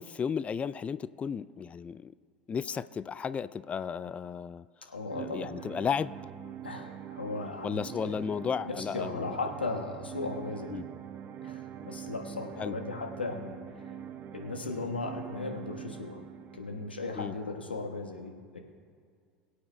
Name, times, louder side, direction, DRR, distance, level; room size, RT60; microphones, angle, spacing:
voice 1, 0.0-2.1 2.5-4.7 5.2-6.1 7.6-9.4 10.7-10.9 12.6-12.8 17.1-17.4, left 6 dB, 25° left, 16 dB, 0.3 m, -34 dB
voice 2, 4.9-5.7 6.6-6.9 7.2-8.2 8.6-10.8 11.4-13.6 14.3-16.2 16.5-18.6, left 3 dB, 90° left, 2 dB, 1.2 m, -37 dB
sound 1, 5.1-17.1, right 9 dB, 35° right, 0.6 m, -44 dB
22.5 x 8.5 x 2.2 m, 2.1 s
hypercardioid pair, 75°, 5 cm